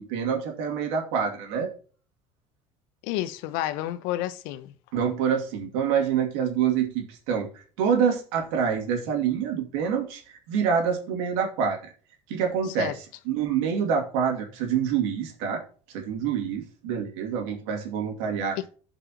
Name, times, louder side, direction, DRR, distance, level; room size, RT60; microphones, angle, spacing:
voice 1, 0.0-1.7 4.9-11.9 12.3-12.9 13.3-15.6 15.9-18.6, right 7 dB, 75° right, 2.6 m, -26 dB
voice 2, 3.0-4.7 12.8-13.0 18.6-18.7, left 14 dB, 70° left, 0.8 m, -30 dB
15.5 x 5.4 x 3.0 m
hypercardioid pair, 75°, 15 cm